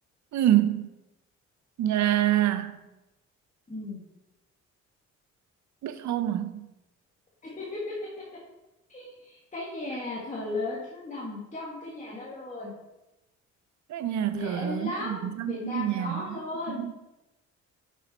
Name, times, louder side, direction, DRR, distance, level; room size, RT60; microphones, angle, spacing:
voice 1, 0.3-0.9 1.8-2.8 5.8-6.7 13.9-16.2 16.7-16.9, right 12 dB, 70° right, 11 dB, 0.7 m, -26 dB
voice 2, 3.7-4.0 7.4-8.0 8.9-12.8 14.3-16.8, left 2 dB, 25° left, -5 dB, 1.6 m, -35 dB
6.4 x 5.5 x 4.1 m, 0.97 s
cardioid pair, 90°, 30 cm